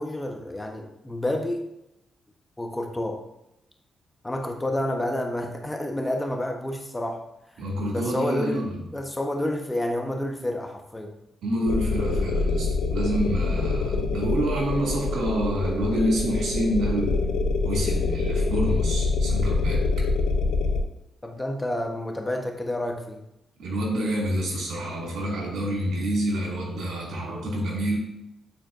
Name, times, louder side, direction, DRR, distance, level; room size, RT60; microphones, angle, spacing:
voice 1, 0.0-1.6 2.6-3.2 4.2-7.2 7.9-11.1 21.2-23.2, left 1 dB, 15° left, 3 dB, 1.1 m, -29 dB
voice 2, 7.6-8.8 11.4-17.2 17.6-19.9 23.6-28.0, right 1 dB, 75° right, -2 dB, 2.4 m, -27 dB
sound 1, 11.7-20.8, left 3 dB, 90° left, 0.5 m, -25 dB
8.9 x 4.3 x 2.6 m, 0.85 s
supercardioid pair, 60°, 0 cm